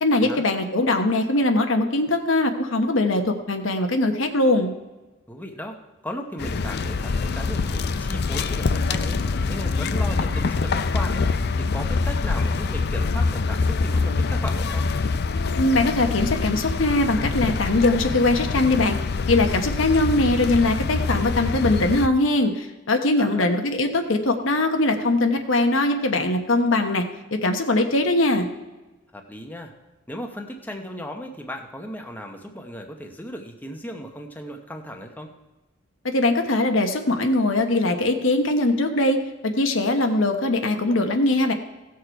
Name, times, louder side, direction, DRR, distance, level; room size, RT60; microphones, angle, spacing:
voice 1, 0.0-4.7 15.6-19.0 19.3-27.0 27.4-28.5 36.0-39.2 39.4-41.5, left 2 dB, 75° left, 5 dB, 1.1 m, -21 dB
voice 2, 5.3-9.2 9.5-11.3 11.6-14.9 23.2-23.5 29.1-29.7 30.1-35.3, equal, 10° left, 3 dB, 0.8 m, -36 dB
sound 1, 6.4-22.1, left 4 dB, 55° left, 0.5 m, -25 dB
16.5 x 6.6 x 4.6 m, 1.1 s
head